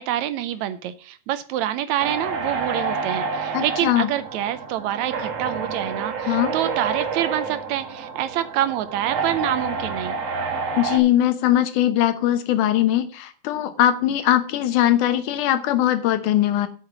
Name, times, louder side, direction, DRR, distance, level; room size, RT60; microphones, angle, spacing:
voice 1, 0.0-10.2, right 12 dB, 75° right, 13 dB, 1.8 m, -26 dB
sound 1, 2.0-11.0, right 4 dB, 55° right, 2.6 m, -29 dB
voice 2, 3.5-4.1 6.3-6.5 10.8-16.7, left 12 dB, 85° left, 11 dB, 2.5 m, -20 dB
8.0 x 6.6 x 7.2 m, 0.41 s
omnidirectional pair, 3.5 m